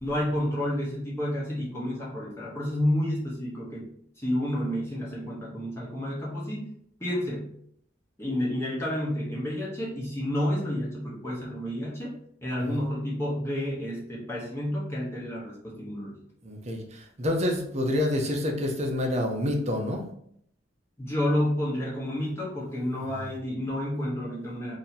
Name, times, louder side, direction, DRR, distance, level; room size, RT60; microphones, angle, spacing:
voice 1, 0.0-3.9 4.2-6.6 7.0-7.5 8.2-12.1 12.4-16.2 21.0-24.7, left 1 dB, 15° left, -7 dB, 0.9 m, -30 dB
voice 2, 16.4-20.0, left 1 dB, 40° right, 2 dB, 0.7 m, -28 dB
2.8 x 2.7 x 4.1 m, 0.69 s
head